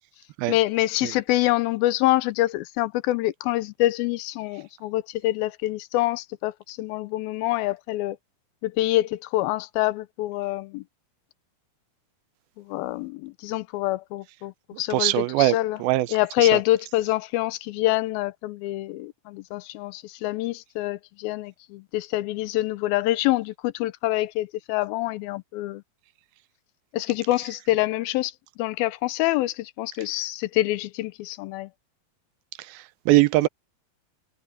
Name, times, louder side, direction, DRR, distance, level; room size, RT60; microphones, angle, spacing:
voice 1, 0.5-8.2 8.6-10.8 12.6-15.8 16.1-25.8 26.9-31.7, left 16 dB, 90° left, 2.5 m, -26 dB
voice 2, 14.7-16.6 32.6-33.5, right 17 dB, 85° right, 2.5 m, -23 dB
omnidirectional pair, 4.3 m